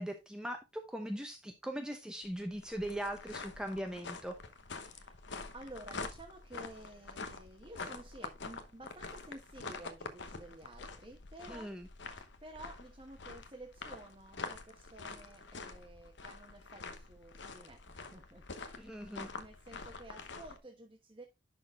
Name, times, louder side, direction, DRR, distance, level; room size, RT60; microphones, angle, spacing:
voice 1, 0.0-4.4 11.5-11.9 18.8-19.3, right 1 dB, 5° right, 0.8 m, -40 dB
sound 1, 2.2-20.6, left 4 dB, 60° left, 1.0 m, -46 dB
voice 2, 4.7-5.2 5.5-11.7 12.2-21.2, right 1 dB, 25° right, 1.1 m, -52 dB
11.0 x 4.2 x 3.6 m
head